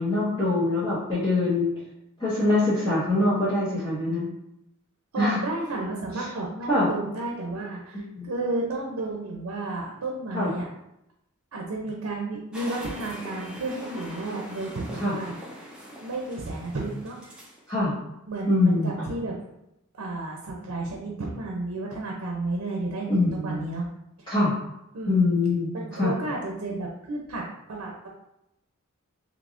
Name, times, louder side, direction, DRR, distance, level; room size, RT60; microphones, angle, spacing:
voice 1, 0.0-1.7 2.2-4.3 5.2-5.4 6.7-6.9 8.1-8.3 10.3-10.5 15.0-15.1 17.7-17.9 18.5-18.9 23.1-23.6 24.3-24.5 25.1-25.7 26.0-26.1, left 2 dB, 20° left, -14 dB, 1.2 m, -23 dB
voice 2, 5.1-10.7 11.5-15.7 16.0-17.2 18.3-19.4 20.0-23.9 24.2-24.3 24.9-25.3 25.7-28.1, right 2 dB, 90° right, -1 dB, 0.6 m, -32 dB
sound 1, 12.5-17.6, equal, 5° right, 0.6 m, -42 dB
3.4 x 3.1 x 2.5 m, 0.85 s
head